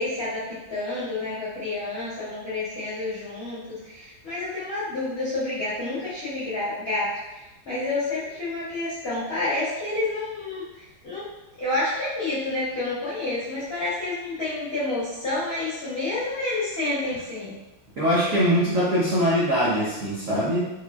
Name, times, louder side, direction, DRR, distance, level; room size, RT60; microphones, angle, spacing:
voice 1, 0.0-11.3 11.6-17.5, left 2 dB, 65° left, -10 dB, 0.6 m, -29 dB
voice 2, 18.0-20.6, equal, 70° right, -9 dB, 0.7 m, -22 dB
4.1 x 2.2 x 2.2 m, 1.0 s
omnidirectional pair, 2.2 m